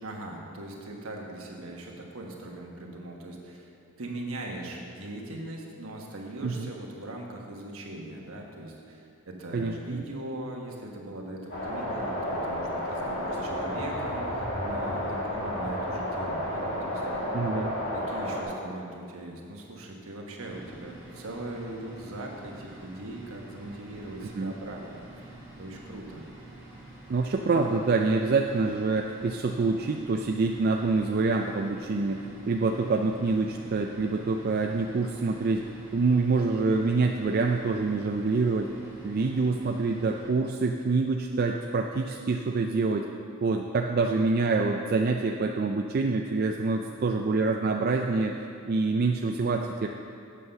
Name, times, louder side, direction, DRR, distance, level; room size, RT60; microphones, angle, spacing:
voice 1, 0.0-3.7 4.0-17.3 17.9-25.3 25.6-26.2, right 1 dB, 75° right, 0 dB, 1.3 m, -40 dB
voice 2, 9.5-10.0 17.3-17.8 24.3-24.5 27.1-35.7 35.9-38.7 39.0-43.1 43.4-49.9, right 3 dB, 45° right, 2 dB, 0.3 m, -26 dB
sound 1, 11.5-18.4, equal, 55° left, 1.9 m, -31 dB
sound 2, 20.4-40.3, right 1 dB, 10° right, 2.1 m, -48 dB
8.4 x 5.6 x 6.6 m, 2.5 s
head